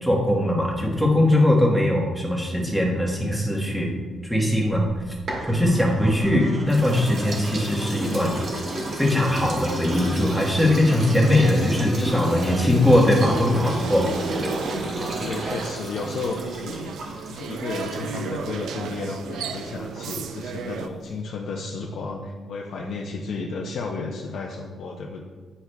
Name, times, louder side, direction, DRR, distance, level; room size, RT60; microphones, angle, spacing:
voice 1, 0.0-3.9 4.2-4.9 5.4-8.3 9.0-14.1, left 1 dB, 5° right, -2 dB, 1.2 m, -20 dB
sound 1, 4.8-6.3 6.7-18.4, right 1 dB, 55° right, 1.7 m, -33 dB
sound 2, 5.3-15.7, right 2 dB, 25° right, 0.7 m, -35 dB
sound 3, 12.2-20.9, right 6 dB, 80° right, 0.4 m, -34 dB
voice 2, 14.9-25.2, left 4 dB, 65° left, -1 dB, 0.6 m, -33 dB
9.6 x 4.6 x 2.2 m, 1.4 s
cardioid pair, 140°, 0 cm